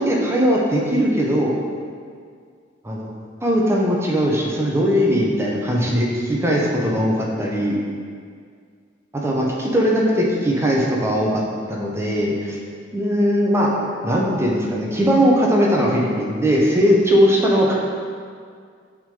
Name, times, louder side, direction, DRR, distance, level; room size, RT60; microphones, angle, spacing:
voice 1, 0.0-1.5 2.8-3.1 3.4-7.8 9.1-11.4 11.7-12.6 12.9-13.7 14.0-17.7, equal, 15° right, -3 dB, 0.8 m, -19 dB
5.8 x 3.7 x 5.3 m, 2.1 s
head